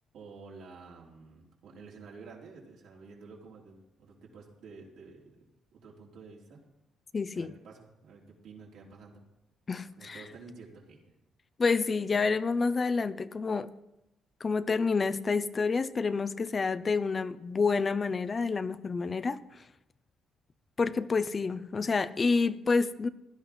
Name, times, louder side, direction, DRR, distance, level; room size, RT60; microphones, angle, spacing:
voice 1, 0.1-5.4 5.7-6.6 7.3-9.2 10.0-11.0, right 4 dB, 80° right, 3.6 m, -50 dB
voice 2, 7.1-7.5 9.7-10.2 11.6-13.7 14.4-19.4 20.8-23.1, left 4 dB, 35° left, 0.6 m, -28 dB
16.0 x 11.5 x 4.3 m
cardioid pair, 90°, 0 cm